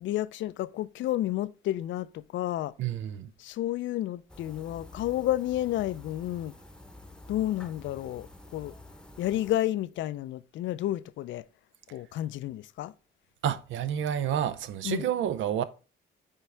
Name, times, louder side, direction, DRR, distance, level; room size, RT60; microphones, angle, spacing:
voice 1, 0.0-2.7 3.4-6.6 7.3-8.7 9.2-11.5 11.9-12.9 14.8-15.1, left 13 dB, 70° left, 0.4 m, -31 dB
voice 2, 2.8-3.3 13.4-15.6, right 9 dB, 75° right, 0.6 m, -29 dB
sound 1, 4.3-9.6, left 2 dB, 5° left, 0.9 m, -49 dB
8.8 x 3.6 x 3.3 m
cardioid pair, 90°, 20 cm